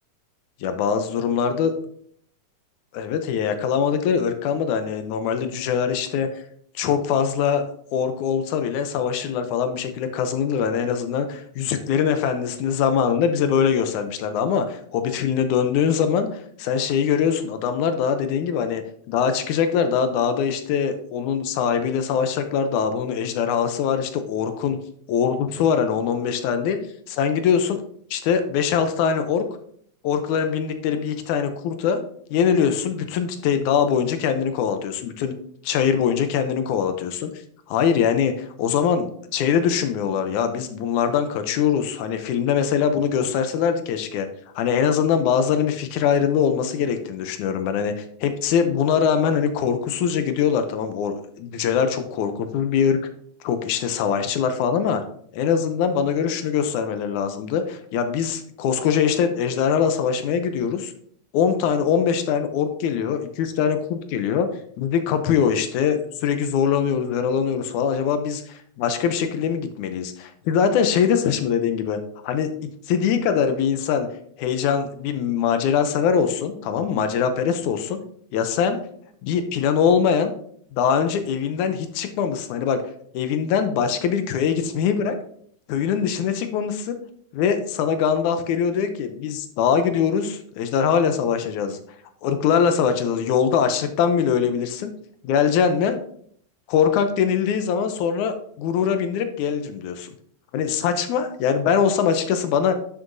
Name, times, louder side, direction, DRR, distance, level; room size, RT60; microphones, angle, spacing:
voice 1, 0.6-1.7 2.9-6.3 6.8-7.6 7.9-18.8 19.1-24.8 25.1-26.8 27.1-27.8 28.1-29.5 30.0-32.0 32.3-35.3 35.6-37.3 37.7-44.3 44.6-53.0 53.4-55.0 55.3-60.9 61.3-64.5 64.8-72.0 72.2-72.5 72.9-74.1 74.4-78.0 78.3-78.8 79.2-80.3 80.7-82.8 83.1-85.2 85.7-87.0 87.3-91.8 92.2-94.9 95.2-96.0 96.7-100.1 100.5-102.7, left 7 dB, 80° left, 8 dB, 2.1 m, -22 dB
11.0 x 6.8 x 2.6 m, 0.62 s
omnidirectional pair, 3.5 m